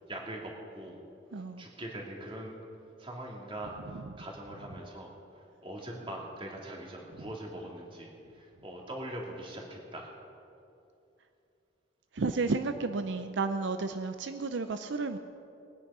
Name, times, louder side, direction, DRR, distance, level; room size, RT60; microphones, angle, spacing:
voice 1, 0.1-1.0 1.3-2.5 3.0-3.7 4.2-5.1 5.6-8.1 8.3-10.1, right 1 dB, 30° right, -1 dB, 2.4 m, -42 dB
voice 2, 1.3-1.6 3.9-4.1 12.1-15.2, right 3 dB, 75° right, 8 dB, 0.6 m, -32 dB
21.0 x 9.8 x 5.5 m, 2.7 s
head